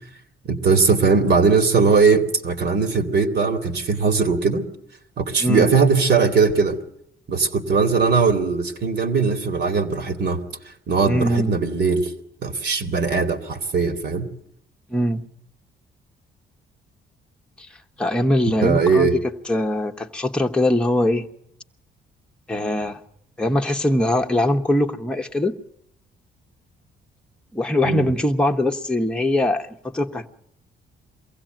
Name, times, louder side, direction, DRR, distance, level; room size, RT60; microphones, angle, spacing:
voice 1, 0.5-4.7 5.2-6.8 7.3-10.4 10.9-12.1 12.4-14.3 18.5-19.2 27.8-28.1, right 4 dB, 55° right, 2.3 m, -19 dB
voice 2, 11.1-11.5 14.9-15.2 17.6-17.7 18.0-19.1 19.5-21.3 22.5-23.0 23.4-25.6 27.5-30.3, left 1 dB, 5° left, 1.2 m, -21 dB
23.0 x 16.0 x 9.0 m
cardioid pair, 90°, 20 cm